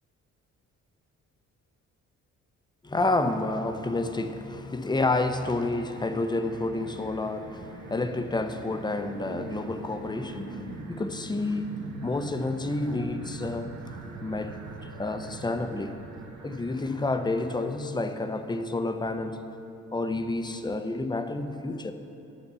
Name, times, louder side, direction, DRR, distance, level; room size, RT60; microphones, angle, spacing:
voice 1, 2.8-14.6 14.9-16.0 16.4-19.4 19.9-21.9, left 2 dB, 15° left, 8 dB, 0.6 m, -30 dB
sound 1, 5.3-17.7, right 3 dB, 70° right, 1.3 m, -43 dB
8.6 x 7.1 x 6.9 m, 2.8 s
cardioid pair, 90°, 30 cm